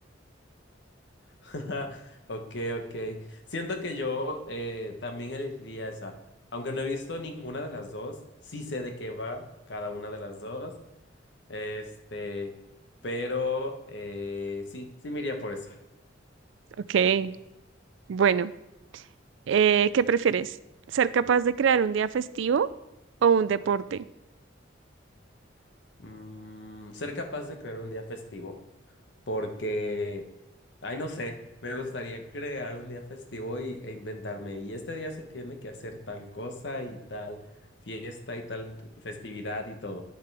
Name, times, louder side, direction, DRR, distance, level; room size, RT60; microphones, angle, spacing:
voice 1, 1.4-6.1 6.5-8.2 8.4-10.7 11.5-12.5 13.0-15.8 26.0-28.6 29.3-30.2 30.8-37.4 37.9-40.0, left 1 dB, 65° left, 4 dB, 1.1 m, -35 dB
voice 2, 16.9-17.3 18.1-18.5 19.5-20.5 20.9-22.7 23.2-24.0, right 7 dB, 75° right, 16 dB, 0.4 m, -23 dB
10.0 x 6.7 x 3.4 m, 0.90 s
head